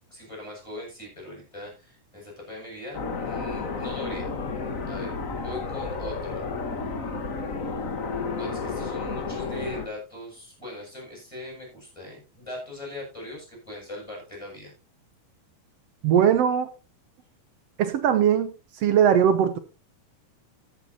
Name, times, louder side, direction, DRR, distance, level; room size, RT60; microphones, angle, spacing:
voice 1, 0.1-4.3 4.9-6.4 8.3-14.7, left 1 dB, 10° left, -1 dB, 8.0 m, -40 dB
sound 1, 2.9-9.9, left 4 dB, 65° left, 0.7 m, -31 dB
voice 2, 16.0-16.7 17.8-18.5 18.8-19.6, right 8 dB, 75° right, 10 dB, 1.5 m, -20 dB
15.0 x 10.5 x 2.9 m, 0.30 s
omnidirectional pair, 3.8 m